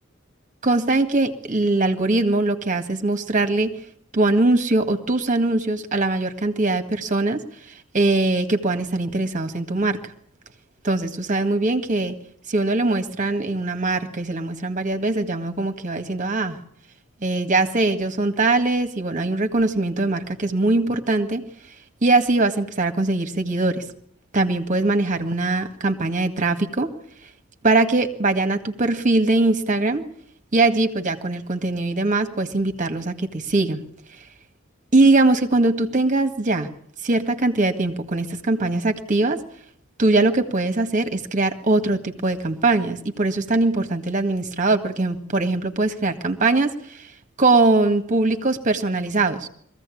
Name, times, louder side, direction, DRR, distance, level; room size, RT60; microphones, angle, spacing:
voice 1, 0.6-3.8 4.1-7.4 7.9-10.0 10.8-12.1 12.5-16.6 17.2-21.5 22.0-23.8 24.3-26.9 27.6-30.1 30.5-33.8 34.9-36.7 37.0-39.4 40.0-47.1 47.4-49.5, right 2 dB, 40° right, 7 dB, 1.9 m, -21 dB
22.0 x 15.5 x 8.6 m, 0.67 s
head